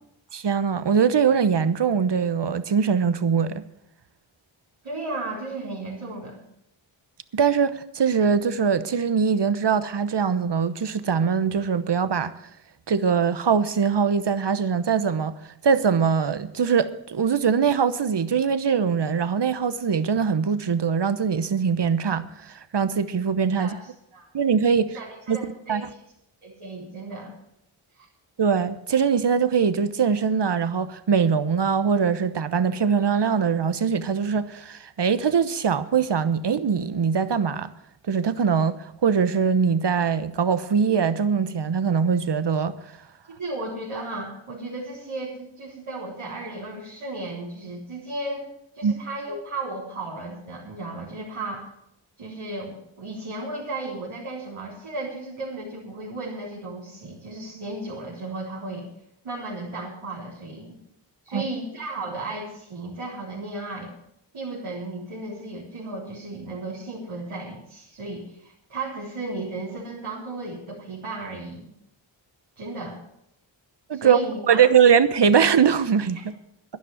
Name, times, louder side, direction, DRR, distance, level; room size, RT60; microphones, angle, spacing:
voice 1, 0.3-3.6 7.3-12.3 12.9-15.4 15.6-23.7 24.3-25.0 25.3-25.4 25.7-25.9 28.4-37.7 38.1-38.8 39.0-42.8 48.8-49.0 61.3-61.4 73.9-74.2 74.5-76.3, right 6 dB, 55° right, 1.0 m, -22 dB
voice 2, 4.8-6.4 23.6-24.3 24.9-25.8 26.4-27.3 27.9-28.1 43.4-48.5 48.8-51.7 52.2-58.9 59.2-60.8 61.2-63.9 64.3-71.7 72.6-73.0 73.9-74.7, right 2 dB, 85° right, 4.1 m, -34 dB
11.5 x 11.0 x 7.2 m
wide cardioid pair, 55°, 49 cm